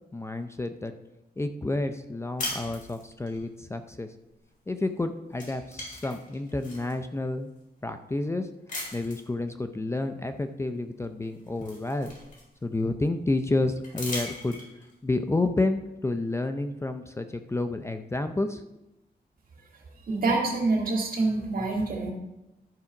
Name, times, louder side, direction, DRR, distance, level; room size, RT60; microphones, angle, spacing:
voice 1, 0.1-0.9 1.4-4.1 4.7-7.5 7.8-8.5 8.9-12.1 12.6-14.6 15.0-18.6, left 2 dB, 15° left, 8 dB, 0.5 m, -30 dB
sound 1, 2.4-3.4 4.8-5.0 5.3-6.9 7.6-7.7 8.7-9.3 10.7-10.8 11.2-12.8 13.8-14.9, left 2 dB, 50° left, 4.3 m, -38 dB
voice 2, 20.1-22.1, right 3 dB, 60° right, -1 dB, 2.6 m, -26 dB
12.5 x 4.8 x 5.8 m, 0.93 s
wide cardioid pair, 120°, 17 cm